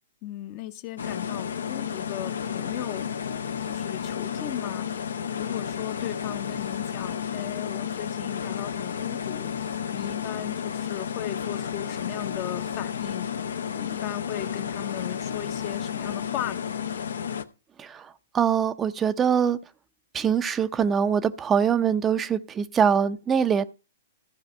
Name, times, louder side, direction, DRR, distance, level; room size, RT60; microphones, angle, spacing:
voice 1, 0.2-3.1 3.4-4.9 5.4-9.5 9.9-13.3 13.7-16.7, left 13 dB, 40° left, 0.8 m, -36 dB
Therapist Office Room Tone, 1.0-17.4, left 7 dB, 75° left, 0.7 m, -32 dB
voice 2, 18.3-19.6 20.1-23.6, right 7 dB, 20° right, 0.6 m, -23 dB
14.5 x 4.9 x 5.5 m
hypercardioid pair, 115°, 0 cm